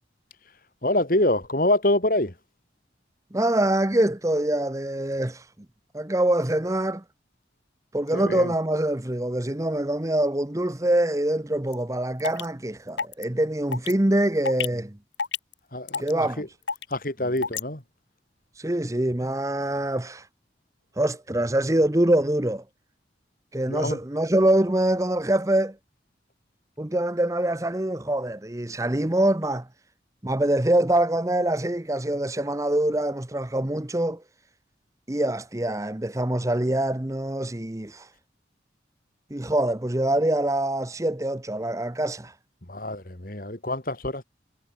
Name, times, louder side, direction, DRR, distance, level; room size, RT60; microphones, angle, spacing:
voice 1, 0.8-2.3 8.1-8.5 15.7-16.5 16.9-17.8 23.7-24.0 42.7-44.2, left 1 dB, 50° left, 3.2 m, -26 dB
voice 2, 3.3-5.4 5.9-7.0 7.9-15.0 16.0-16.4 18.6-20.3 21.0-22.6 23.5-25.8 26.8-29.7 30.2-34.2 35.1-38.1 39.3-42.3, right 1 dB, 15° right, 0.9 m, -24 dB
sound 1, 11.7-11.8 12.2-12.5 13.0-13.2 13.7-13.9 14.5-14.7 15.2-15.5 15.9-16.1 16.7-16.9 17.4-17.6, left 6 dB, 85° left, 2.0 m, -28 dB
head